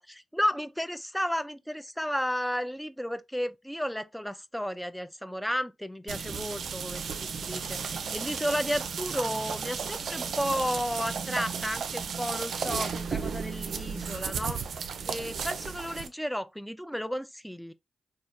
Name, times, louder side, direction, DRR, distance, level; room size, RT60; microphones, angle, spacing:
voice 1, 0.0-14.6 15.1-17.7, equal, 5° left, 0.3 m, -33 dB
sound 1, 6.1-16.1, right 6 dB, 75° right, 0.4 m, -34 dB
3.3 x 2.7 x 2.3 m
supercardioid pair, 45°, 0 cm